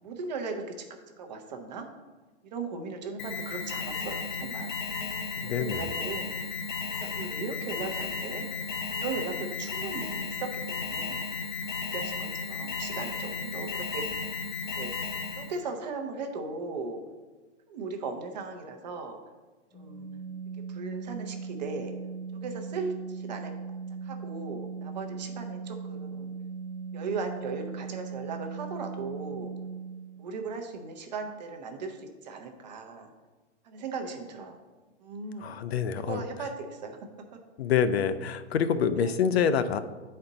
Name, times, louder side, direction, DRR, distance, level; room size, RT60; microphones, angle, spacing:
voice 1, 0.0-0.6 1.2-1.9 2.4-4.8 5.6-6.4 7.0-8.5 9.0-11.2 11.8-14.2 14.7-14.9 15.4-17.0 17.7-19.2 19.7-20.1 20.7-21.9 22.3-23.5 24.0-26.3 26.9-29.5 30.2-33.1 33.6-34.6 35.0-35.6 36.0-37.0 37.3-37.4 39.0-39.2, right 4 dB, 35° right, 4 dB, 0.7 m, -37 dB
Alarm, 3.2-15.6, left 4 dB, 45° left, 0.8 m, -34 dB
voice 2, 5.4-5.9 35.4-36.2 37.6-39.8, left 7 dB, 60° left, 11 dB, 0.5 m, -26 dB
Organ, 19.7-30.3, right 5 dB, 5° left, 0.6 m, -39 dB
8.6 x 4.3 x 3.9 m, 1.3 s
hypercardioid pair, 170°, 35 cm